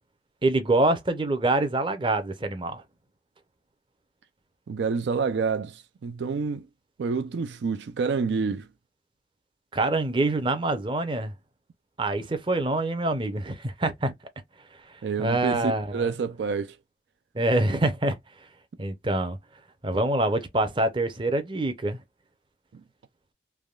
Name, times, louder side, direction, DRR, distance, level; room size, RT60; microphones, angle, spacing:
voice 1, 0.4-2.8 9.7-11.3 12.0-14.1 15.2-16.1 17.3-18.2 18.8-19.4 19.8-22.0, right 2 dB, 25° right, 0.6 m, -25 dB
voice 2, 4.7-6.7 7.0-8.7 15.0-16.8, right 5 dB, 75° right, 0.4 m, -28 dB
3.4 x 2.2 x 2.3 m
head